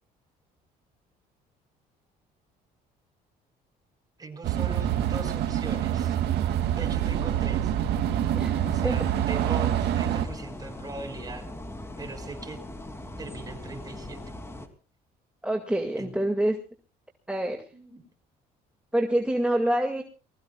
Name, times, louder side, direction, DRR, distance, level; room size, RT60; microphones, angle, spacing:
voice 1, 4.2-6.2 6.7-7.7 8.6-11.5 12.0-12.6 13.2-14.2 16.0-16.1 17.7-18.0, right 3 dB, 20° right, 5 dB, 5.4 m, -40 dB
sound 1, 4.4-10.2, right 11 dB, 75° right, 2.3 m, -26 dB
voice 2, 8.4-9.0 15.4-16.6 17.3-17.6 18.9-20.0, right 1 dB, 5° right, 3 dB, 2.0 m, -26 dB
sound 2, 8.6-14.7, left 1 dB, 15° left, 2.8 m, -40 dB
29.0 x 20.5 x 2.3 m, 0.36 s
cardioid pair, 110°, 17 cm